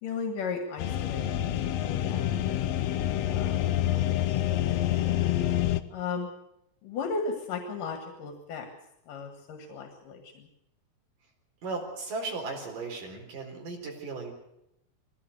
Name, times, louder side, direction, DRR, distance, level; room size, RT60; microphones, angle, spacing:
voice 1, 0.0-1.4 1.8-2.6 3.2-3.6 3.9-4.3 4.6-5.1 5.9-6.3 6.8-8.7 9.1-10.5, left 4 dB, 85° left, 5 dB, 3.4 m, -36 dB
sound 1, 0.8-5.8, left 12 dB, 70° left, 1.7 m, -27 dB
voice 2, 11.6-14.3, right 3 dB, 85° right, 1 dB, 5.8 m, -36 dB
21.5 x 17.0 x 8.1 m, 0.82 s
omnidirectional pair, 3.7 m